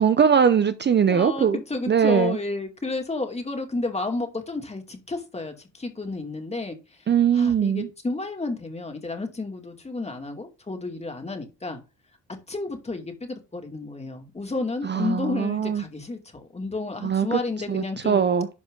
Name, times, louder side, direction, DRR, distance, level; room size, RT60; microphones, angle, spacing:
voice 1, 0.0-1.6 1.9-2.4 7.1-7.9 14.8-15.8 17.0-17.4 17.7-18.5, right 7 dB, 35° right, 0.8 m, -21 dB
voice 2, 1.1-7.1 7.3-11.8 12.5-18.3, left 3 dB, 20° left, 2.5 m, -31 dB
11.5 x 4.9 x 3.9 m
cardioid pair, 90°, 30 cm